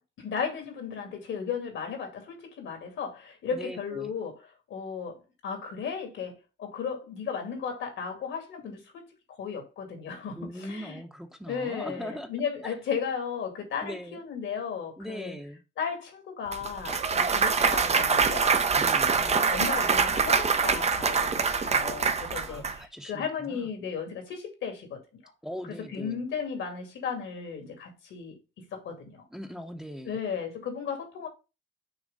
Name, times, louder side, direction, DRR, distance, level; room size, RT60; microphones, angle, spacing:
voice 1, 0.2-4.4 4.7-11.0 11.5-15.4 15.8-18.5 19.0-25.0 25.7-29.2 30.1-31.3, left 6 dB, 75° left, 2.3 m, -35 dB
voice 2, 3.5-4.1 10.4-12.3 12.6-12.7 13.8-14.2 15.0-15.6 18.8-19.2 22.3-23.7 25.4-26.2 29.3-30.2, equal, 5° right, 0.9 m, -40 dB
Clapping / Cheering / Applause, 16.5-22.7, right 5 dB, 35° right, 0.7 m, -24 dB
6.3 x 3.0 x 5.4 m
cardioid pair, 90°, 20 cm